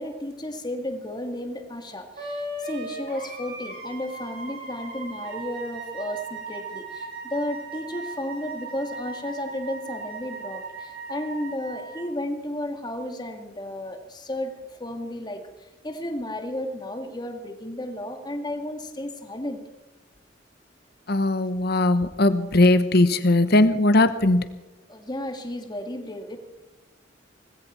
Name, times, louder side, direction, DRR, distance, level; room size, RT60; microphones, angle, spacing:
voice 1, 0.0-15.4 15.8-19.6 24.9-26.4, left 1 dB, 25° left, 6 dB, 2.0 m, -33 dB
Wind instrument woodwind instrument, 2.2-12.0, right 3 dB, 55° right, 7.6 m, -37 dB
voice 2, 21.1-24.4, left 2 dB, 60° left, 13 dB, 1.1 m, -19 dB
19.0 x 16.5 x 4.4 m, 1.1 s
head